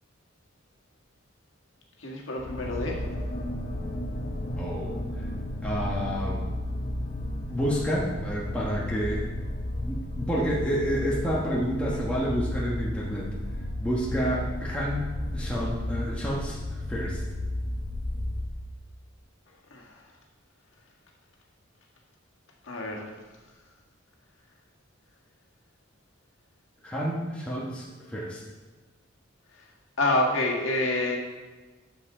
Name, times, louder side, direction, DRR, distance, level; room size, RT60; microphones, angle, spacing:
voice 1, 2.0-3.0 19.7-19.8 22.7-23.1 30.0-31.2, left 2 dB, 70° left, -1 dB, 1.7 m, -27 dB
sound 1, 2.4-18.6, left 1 dB, 40° left, 1.1 m, -33 dB
voice 2, 4.6-5.3 5.6-6.4 7.5-9.2 9.7-13.3 13.8-15.1 15.3-17.2 26.8-28.4, equal, 5° left, -6 dB, 1.3 m, -29 dB
12.0 x 7.1 x 3.8 m, 1.3 s
head